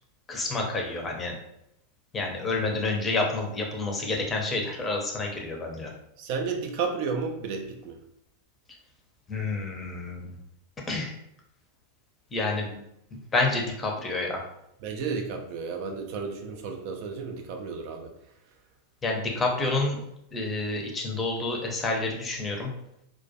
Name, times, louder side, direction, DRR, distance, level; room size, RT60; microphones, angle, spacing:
voice 1, 0.3-1.4 2.1-5.9 9.3-10.4 10.9-11.1 12.3-12.8 13.1-14.4 19.0-20.0 20.3-22.7, left 3 dB, 20° left, 0 dB, 0.6 m, -29 dB
voice 2, 6.2-8.0 14.8-18.1, right 5 dB, 45° right, 3 dB, 0.3 m, -32 dB
2.2 x 2.1 x 2.6 m, 0.77 s
figure-of-eight pair, 90°, 0 cm